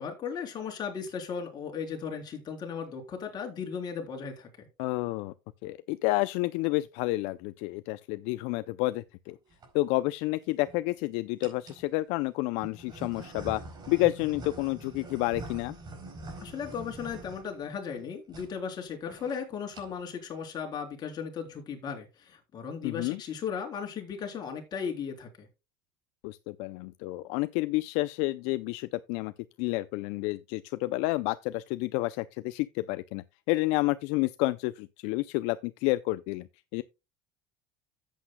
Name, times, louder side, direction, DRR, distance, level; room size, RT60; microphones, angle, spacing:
voice 1, 0.0-4.7 16.4-25.5, left 6 dB, 40° left, 3.6 m, -36 dB
voice 2, 4.8-5.3 5.6-9.4 9.7-13.6 13.9-15.7 22.8-23.2 26.2-29.3 29.6-36.5 36.7-36.8, left 19 dB, 70° left, 0.5 m, -30 dB
sound 1, 9.3-9.7 10.4-10.9 11.4-11.9 12.6-18.0 18.3-18.5 18.8-18.9 19.1-19.4 19.6-20.1, right 2 dB, 35° right, 4.6 m, -44 dB
13.5 x 8.3 x 2.2 m
supercardioid pair, 110°, 11 cm